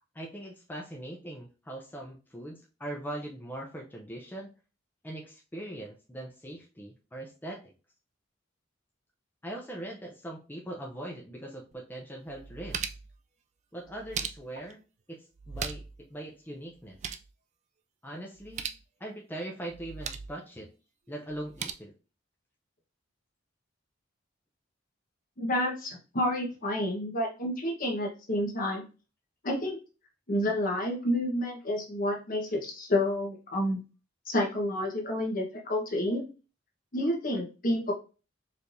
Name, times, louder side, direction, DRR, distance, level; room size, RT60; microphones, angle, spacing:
voice 1, 0.1-4.5 5.0-7.6 9.4-12.8 13.7-14.8 15.1-17.0 18.0-18.6 19.0-20.7 21.1-21.9, right 1 dB, 10° left, -1 dB, 0.6 m, -41 dB
sound 1, 11.7-11.8 12.3-13.2 13.9-14.7 15.4-16.0 16.3-16.4 16.7-17.3 18.4-18.8 19.7-20.3 21.3-21.7, right 7 dB, 35° right, 0.3 m, -38 dB
voice 2, 25.4-28.8 29.4-29.8 30.3-33.8 34.3-36.2 36.9-37.9, left 1 dB, 45° left, 0 dB, 1.1 m, -29 dB
4.5 x 3.4 x 2.6 m, 0.33 s
head